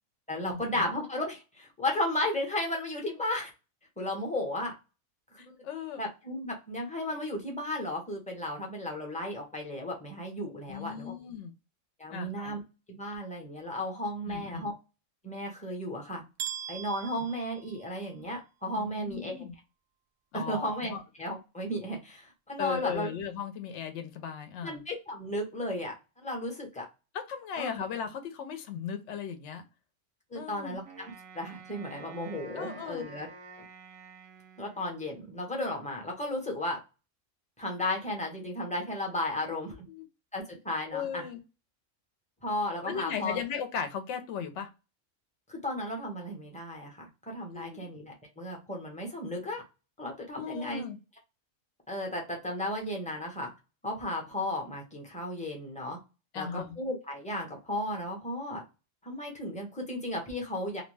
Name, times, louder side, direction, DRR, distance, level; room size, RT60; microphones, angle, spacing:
voice 1, 0.3-3.5 4.0-4.7 5.3-5.4 6.0-11.1 12.0-12.6 12.9-14.7 15.2-16.2 16.7-19.3 20.3-23.1 24.6-26.9 27.6-27.9 30.3-33.3 34.6-36.8 37.6-39.9 40.3-41.3 42.4-43.4 45.5-49.6 50.0-50.9 51.9-53.5 53.8-56.0 56.3-58.6 59.0-60.8, left 1 dB, 10° left, 0.6 m, -34 dB
voice 2, 5.4-6.0 10.7-11.5 12.1-12.5 14.3-14.7 18.7-19.5 20.3-21.0 22.6-24.8 27.3-29.6 30.4-30.8 32.6-33.0 39.4-39.6 39.9-40.0 40.9-41.4 42.8-44.7 47.5-47.9 50.3-51.0 56.3-56.7, left 7 dB, 70° left, 0.9 m, -37 dB
sound 1, 16.4-18.4, right 9 dB, 65° right, 0.8 m, -40 dB
Wind instrument woodwind instrument, 30.8-35.2, right 4 dB, 85° right, 1.1 m, -50 dB
2.6 x 2.1 x 3.1 m
omnidirectional pair, 1.4 m